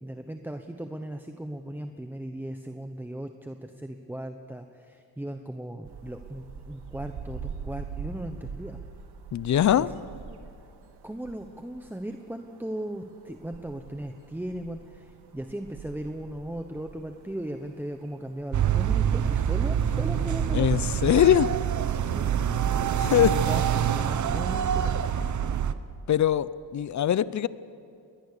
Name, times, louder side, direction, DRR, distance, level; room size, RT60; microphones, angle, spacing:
voice 1, 0.0-8.8 9.8-9.9 11.0-20.9 22.1-22.3 23.5-25.0, right 1 dB, 5° right, 6 dB, 0.8 m, -37 dB
sound 1, 5.8-25.6, right 6 dB, 70° right, 2.2 m, -45 dB
voice 2, 9.3-9.9 20.5-21.5 23.0-23.4 26.1-27.5, left 11 dB, 45° left, 18 dB, 0.6 m, -22 dB
sound 2, 18.5-25.7, right 9 dB, 45° right, 0.9 m, -25 dB
22.0 x 19.5 x 6.8 m, 2.5 s
cardioid pair, 105°, 41 cm